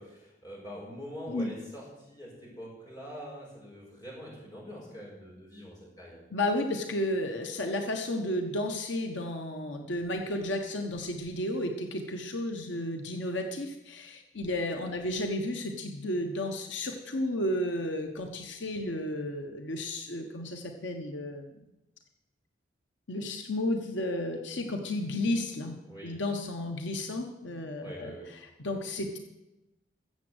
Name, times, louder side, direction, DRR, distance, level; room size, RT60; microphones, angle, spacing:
voice 1, 0.0-6.3 25.9-26.2 27.8-28.3, equal, 20° left, -4 dB, 5.2 m, -44 dB
voice 2, 6.3-21.6 23.1-25.8 26.0-28.1 28.6-29.2, left 1 dB, 80° left, 4 dB, 1.3 m, -32 dB
14.0 x 7.6 x 8.0 m, 0.97 s
head